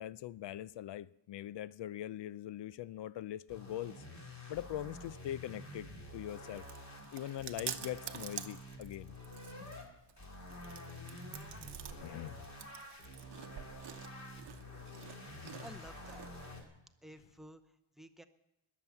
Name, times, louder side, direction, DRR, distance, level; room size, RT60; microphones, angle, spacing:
voice 1, 0.0-4.0 4.5-6.6 7.1-9.2 11.9-12.5 15.4-15.7, left 12 dB, 60° left, 0.5 m, -42 dB
sound 1, 3.5-9.8 10.2-16.6, left 1 dB, 35° left, 2.8 m, -49 dB
Chewing mastication, 6.0-16.6, right 10 dB, 60° right, 0.9 m, -49 dB
voice 2, 15.6-16.3 17.0-18.3, right 1 dB, ahead, 0.7 m, -53 dB
20.5 x 7.5 x 7.0 m
wide cardioid pair, 160°, 48 cm